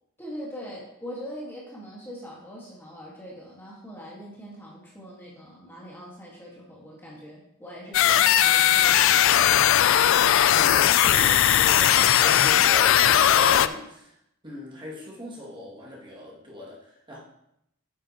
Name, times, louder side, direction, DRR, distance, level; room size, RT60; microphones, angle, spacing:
voice 1, 0.2-9.7, equal, 10° left, -5 dB, 1.6 m, -42 dB
sound 1, 7.9-13.7, left 11 dB, 60° left, 0.3 m, -18 dB
voice 2, 10.5-14.2 14.4-17.2, left 1 dB, 25° right, -5 dB, 2.2 m, -39 dB
9.3 x 7.4 x 2.9 m, 0.79 s
head